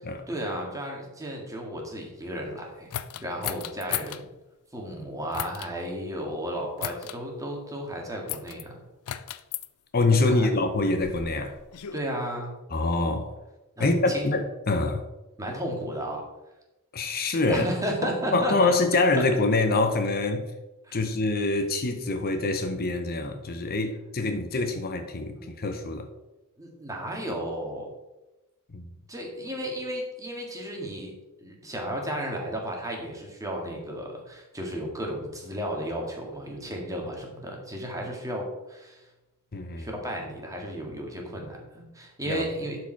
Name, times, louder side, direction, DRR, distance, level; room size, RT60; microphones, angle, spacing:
voice 1, 0.3-2.9 3.2-4.3 4.7-8.7 10.2-10.5 11.9-12.5 13.8-14.3 15.4-16.2 17.5-18.7 20.8-21.0 25.3-25.5 26.6-27.9 29.1-31.1 31.4-39.0 39.8-42.8, equal, 15° right, 1.9 m, -33 dB
sound 1, 2.9-4.2 5.3-5.7 6.8-7.2 8.3-8.6 9.1-9.7 10.6-12.0, left 11 dB, 85° left, 0.5 m, -35 dB
voice 2, 9.9-11.6 12.7-13.3 13.8-15.0 16.9-17.7 18.3-20.4 20.9-26.1 28.7-28.8 39.5-39.9 42.3-42.5, left 3 dB, 45° left, 0.7 m, -25 dB
11.5 x 4.8 x 4.5 m
head